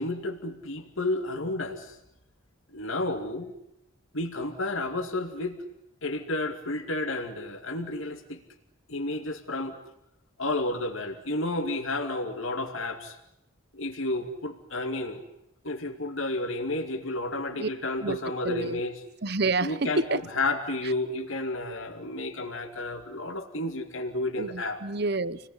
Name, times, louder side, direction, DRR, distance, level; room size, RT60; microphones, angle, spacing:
voice 1, 0.0-1.9 2.7-3.5 4.1-5.6 6.0-8.4 8.9-9.8 10.4-13.2 13.7-15.2 15.6-19.0 19.6-24.8, left 2 dB, 75° left, 2.7 m, -31 dB
voice 2, 18.4-18.8 19.2-20.2 24.4-25.4, right 3 dB, 50° right, 1.0 m, -28 dB
29.5 x 20.0 x 9.8 m
head